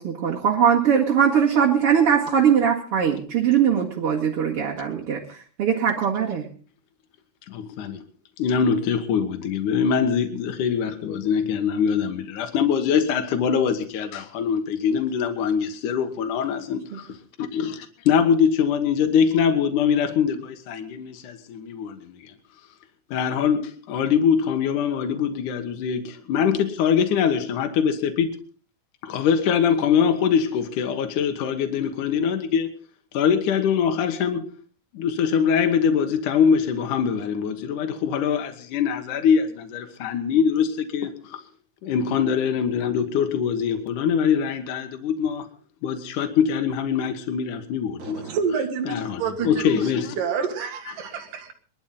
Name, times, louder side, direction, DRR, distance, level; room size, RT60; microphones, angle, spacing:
voice 1, 0.0-6.5 16.9-17.0, right 8 dB, 45° right, 2.7 m, -21 dB
voice 2, 7.5-8.0 8.4-22.3 23.1-28.3 29.0-32.7 33.1-34.5 34.9-41.4 41.8-45.5 45.8-48.2 48.9-50.2, left 7 dB, 70° left, 2.8 m, -23 dB
voice 3, 48.0-49.9 50.2-51.5, right 6 dB, 80° right, 3.5 m, -28 dB
22.5 x 12.0 x 3.9 m
omnidirectional pair, 3.8 m